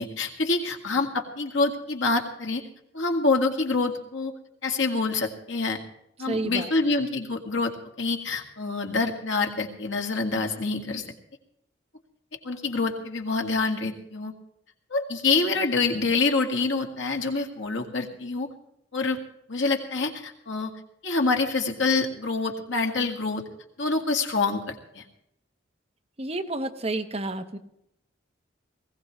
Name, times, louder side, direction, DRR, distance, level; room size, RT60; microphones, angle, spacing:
voice 1, 0.0-2.6 2.9-4.3 4.6-5.8 6.2-11.0 12.4-14.3 14.9-18.5 18.9-19.2 19.5-20.7 21.0-23.4 23.8-25.0, left 3 dB, 90° left, 3 dB, 2.0 m, -26 dB
voice 2, 6.3-6.7 26.2-27.6, right 2 dB, 30° right, 6 dB, 1.1 m, -30 dB
20.0 x 16.5 x 3.2 m, 0.78 s
head